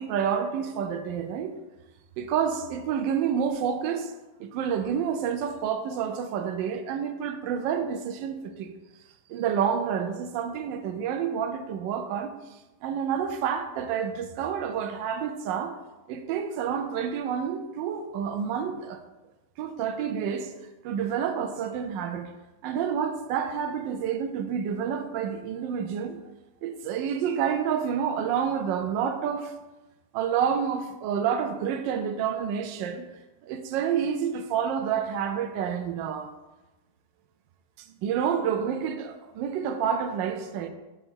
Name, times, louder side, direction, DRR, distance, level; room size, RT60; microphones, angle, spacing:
voice 1, 0.0-1.6 2.2-4.1 4.4-8.7 9.3-12.3 12.8-15.8 16.1-19.0 19.6-20.5 20.8-22.3 22.6-26.2 26.6-29.5 30.1-33.0 33.4-36.3 38.0-40.7, right 7 dB, 80° right, 1.3 m, -29 dB
6.5 x 3.7 x 4.5 m
omnidirectional pair, 2.0 m